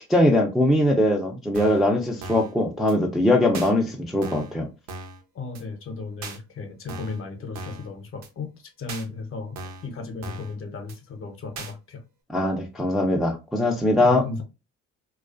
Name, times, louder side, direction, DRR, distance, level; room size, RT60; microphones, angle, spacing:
voice 1, 0.1-4.7 12.3-14.2, left 1 dB, ahead, 0.4 m, -21 dB
sound 1, 1.5-1.9 2.2-2.5 2.9-3.0 3.5-3.7 4.2-4.5 4.9-5.2 5.5-5.6 6.2-6.4 6.9-7.2 7.5-7.9 8.2-8.3 8.9-9.1 9.6-9.9 10.2-10.5 10.9-11.0 11.6-11.7, right 3 dB, 60° right, 0.7 m, -38 dB
voice 2, 5.3-8.5 8.8-12.0 14.0-14.4, left 3 dB, 40° left, 0.7 m, -35 dB
2.3 x 2.3 x 2.4 m
supercardioid pair, 70°, 32 cm